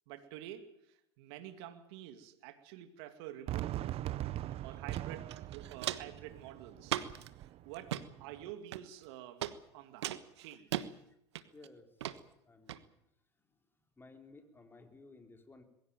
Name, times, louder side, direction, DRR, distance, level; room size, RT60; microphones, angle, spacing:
voice 1, 0.1-3.8 4.6-7.0 7.6-10.9, right 12 dB, 70° right, 9 dB, 2.4 m, -49 dB
Fireworks, 3.5-8.5, right 14 dB, 45° right, 0.9 m, -41 dB
voice 2, 4.5-4.8 11.5-12.8 13.5-15.6, left 3 dB, 15° left, 5 dB, 4.1 m, -58 dB
Walk footsteps, 4.9-5.0 5.3-6.2 6.9-7.3 7.7-8.0 8.7-9.1 9.4-9.5 10.0-10.9 11.4-11.7 12.0-12.2 12.7-12.8, right 12 dB, 85° right, 1.3 m, -37 dB
22.0 x 16.0 x 9.1 m, 0.78 s
hypercardioid pair, 100°, 14 cm